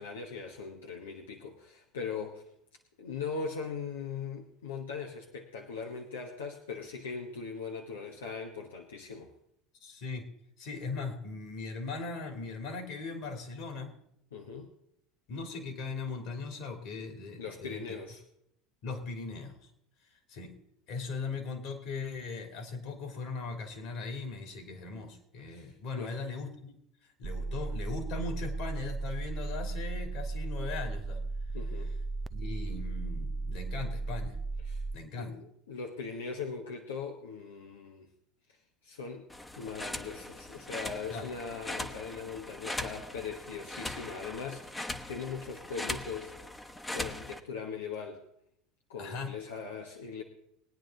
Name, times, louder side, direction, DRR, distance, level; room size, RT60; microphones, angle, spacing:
voice 1, 0.0-2.4 3.0-9.3 14.3-14.7 17.4-18.2 25.5-26.1 27.4-27.5 31.5-31.9 34.6-34.8 35.1-38.1 38.8-39.3 39.6-46.3 46.9-48.2 48.9-50.2, left 5 dB, 90° left, 1 dB, 1.2 m, -40 dB
voice 2, 9.8-10.2 10.6-13.9 15.3-18.0 18.8-19.7 20.3-20.5 20.9-26.7 27.2-31.2 32.3-34.3 34.9-35.3 41.1-41.3 49.0-49.4, left 3 dB, 65° left, 5 dB, 3.2 m, -39 dB
sound 1, 27.2-35.0, right 3 dB, 25° right, 0.4 m, -35 dB
sound 2, 39.3-47.4, left 1 dB, 10° left, 1.0 m, -40 dB
20.5 x 9.3 x 3.9 m, 0.73 s
hypercardioid pair, 85°, 0 cm